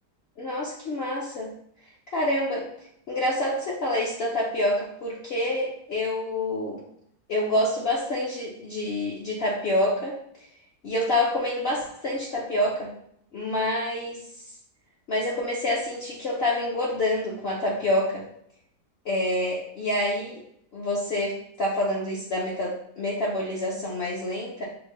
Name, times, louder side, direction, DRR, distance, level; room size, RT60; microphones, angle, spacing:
voice 1, 0.4-1.5 2.1-2.7 3.1-6.8 7.3-10.2 10.8-12.9 13.3-14.2 15.1-18.2 19.0-20.4 20.7-24.7, left 1 dB, 55° left, -4 dB, 0.7 m, -27 dB
6.2 x 2.2 x 3.0 m, 0.69 s
omnidirectional pair, 1.8 m